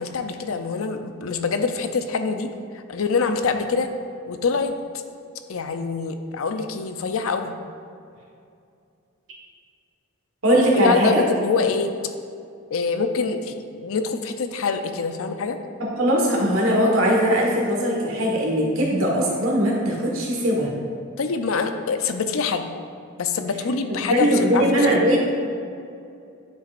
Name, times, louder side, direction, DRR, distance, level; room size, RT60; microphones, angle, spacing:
voice 1, 0.0-3.9 4.3-4.8 5.5-7.5 10.7-11.9 12.7-15.6 21.2-22.7 23.2-24.8, left 5 dB, 75° left, 7 dB, 0.5 m, -25 dB
voice 2, 10.4-11.2 15.8-20.7 24.0-25.2, equal, 75° right, -2 dB, 1.5 m, -20 dB
9.9 x 5.6 x 2.5 m, 2.5 s
head